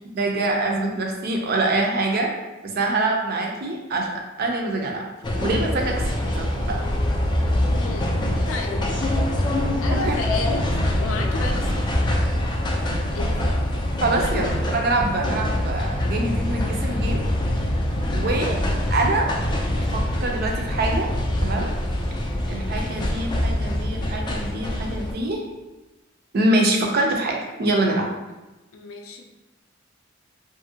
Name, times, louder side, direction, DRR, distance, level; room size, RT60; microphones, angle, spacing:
voice 1, 0.1-2.3 2.6-4.1 4.4-5.1 5.4-6.0 6.3-6.8 10.1-10.2 14.0-17.2 18.1-18.5 18.9-19.3 19.8-21.1 21.4-21.7 22.5-25.4 26.3-28.1, right 2 dB, 50° right, 1 dB, 0.4 m, -24 dB
sound 1, 5.2-25.1, left 1 dB, 20° left, 0.3 m, -24 dB
voice 2, 7.6-8.1 8.5-8.7 9.8-12.1 13.1-13.4 14.2-14.3 28.7-29.2, left 3 dB, 85° left, 3 dB, 0.4 m, -32 dB
2.7 x 2.6 x 2.7 m, 1.1 s
head